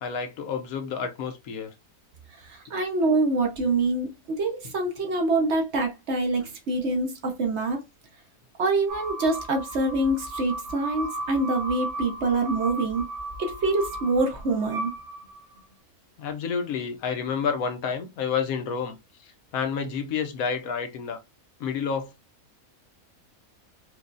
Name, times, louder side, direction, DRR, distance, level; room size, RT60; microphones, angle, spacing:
voice 1, 0.0-1.7 16.2-19.0 19.5-21.2 21.6-22.1, left 6 dB, 80° left, 1.2 m, -29 dB
voice 2, 2.5-7.8 8.6-13.0 13.4-14.9, right 2 dB, 55° right, 1.0 m, -25 dB
sound 1, 8.9-15.6, right 1 dB, 75° right, 1.4 m, -35 dB
4.5 x 2.4 x 2.5 m
omnidirectional pair, 1.5 m